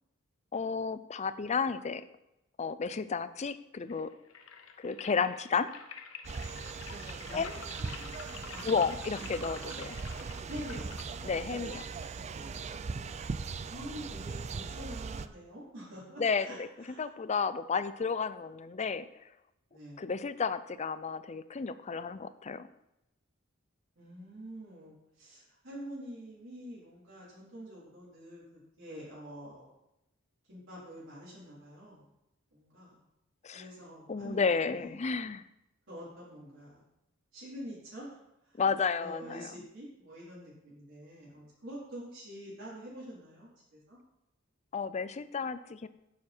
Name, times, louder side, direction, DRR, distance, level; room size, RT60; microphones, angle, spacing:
voice 1, 0.5-2.0 2.6-4.1 4.8-5.7 7.3-7.5 8.6-10.0 11.2-11.8 16.2-16.7 17.0-19.1 20.0-22.7 33.4-33.6 34.1-35.4 38.6-39.5 44.7-45.9, left 5 dB, 35° left, 14 dB, 0.5 m, -32 dB
sound 1, 3.8-12.8, left 5 dB, 75° left, 0.9 m, -49 dB
sound 2, 6.2-15.3, right 4 dB, 35° right, 0.4 m, -40 dB
voice 2, 7.0-8.8 9.2-9.3 10.5-10.9 11.9-13.4 13.6-17.1 19.7-20.0 24.0-29.7 30.5-32.1 32.5-33.0 33.5-34.9 35.9-36.8 37.3-38.2 38.4-38.7 39.0-44.0, equal, 65° right, -8 dB, 4.1 m, -47 dB
9.5 x 7.3 x 4.4 m, 0.86 s
head